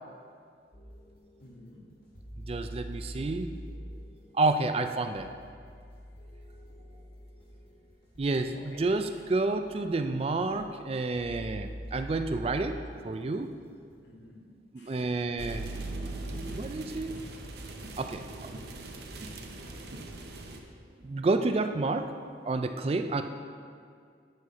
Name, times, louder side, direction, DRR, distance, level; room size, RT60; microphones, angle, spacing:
sound 1, 0.7-14.0, equal, 55° left, 1.8 m, -46 dB
voice 1, 1.4-1.8 4.8-4.9 8.5-8.8 14.1-15.0, left 1 dB, 85° left, -1 dB, 1.4 m, -53 dB
voice 2, 2.4-3.5 4.3-5.3 8.2-12.8 13.0-13.5 14.7-15.7 16.5-17.2 18.0-18.5 21.0-22.1 22.4-23.2, right 3 dB, 35° right, 8 dB, 0.3 m, -29 dB
sound 2, 15.4-20.6, right 2 dB, 65° right, 0.7 m, -40 dB
8.4 x 6.5 x 4.1 m, 2.2 s
head